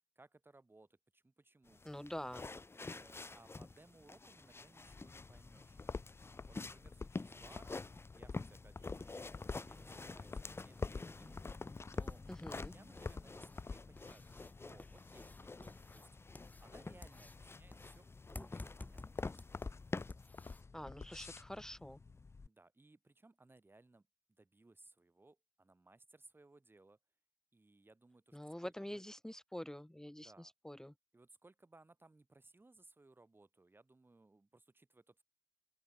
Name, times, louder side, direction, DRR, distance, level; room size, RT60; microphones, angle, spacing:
voice 1, 0.1-1.8 2.7-5.8 6.5-7.7 8.1-9.3 9.6-11.4 11.9-12.2 12.7-16.1 16.6-19.6 22.4-24.0 24.3-27.0 27.5-29.0 30.2-30.5 31.1-35.2, right 2 dB, 55° right, 3.5 m, -64 dB
sound 1, 1.7-20.1, left 3 dB, 65° left, 1.2 m, -49 dB
voice 2, 1.8-2.5 12.3-12.7 20.7-22.0 28.3-30.9, left 1 dB, 10° left, 0.9 m, -46 dB
sound 2, 4.8-22.5, left 4 dB, 80° left, 0.5 m, -49 dB
sound 3, 9.3-20.6, left 2 dB, 40° left, 0.8 m, -56 dB
open air
wide cardioid pair, 65°, 5 cm